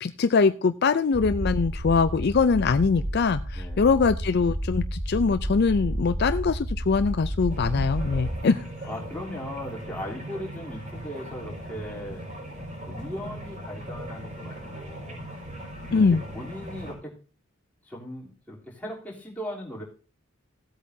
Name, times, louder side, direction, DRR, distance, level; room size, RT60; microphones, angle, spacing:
voice 1, 0.0-8.6 15.9-16.2, left 4 dB, 55° left, 11 dB, 0.4 m, -23 dB
sound 1, 1.1-8.4, right 1 dB, 80° right, 2.5 m, -31 dB
voice 2, 3.5-3.9 8.1-8.4 8.8-12.2 12.9-15.3 15.9-17.1 17.9-19.8, equal, 10° left, -4 dB, 3.3 m, -38 dB
sound 2, 7.5-16.9, right 1 dB, 40° right, 5.2 m, -39 dB
16.5 x 8.4 x 2.7 m, 0.36 s
head